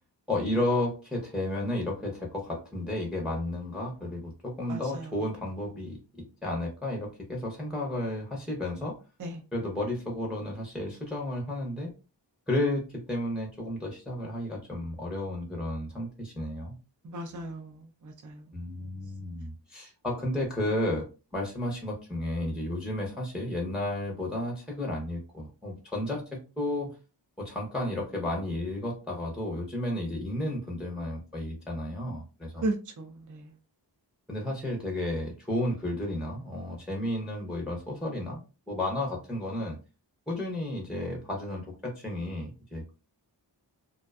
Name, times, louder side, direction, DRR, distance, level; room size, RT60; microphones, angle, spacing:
voice 1, 0.3-6.0 6.4-9.0 9.5-11.9 12.5-16.7 18.5-21.1 21.3-26.9 27.4-32.7 34.3-38.4 38.7-39.8 40.3-42.9, left 1 dB, ahead, 0.7 m, -32 dB
voice 2, 17.0-17.7 18.0-18.4 32.6-33.4, right 2 dB, 45° right, 0.5 m, -34 dB
2.5 x 2.2 x 2.3 m
wide cardioid pair, 60°, 44 cm